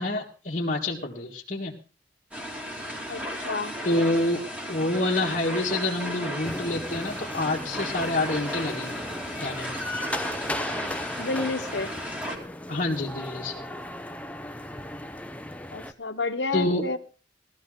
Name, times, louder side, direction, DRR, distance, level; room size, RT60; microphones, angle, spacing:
voice 1, 0.0-1.8 3.8-4.4 4.7-9.0 9.4-9.8 12.7-13.6 16.5-16.8, left 2 dB, 45° left, -3 dB, 1.8 m, -27 dB
sound 1, 2.3-12.4, equal, 10° right, 2.7 m, -35 dB
voice 2, 3.1-3.7 11.2-11.9 15.7-17.0, left 3 dB, 70° left, 9 dB, 1.2 m, -30 dB
sound 2, 6.4-15.9, left 1 dB, 10° left, 0.8 m, -36 dB
17.5 x 13.0 x 3.8 m, 0.34 s
head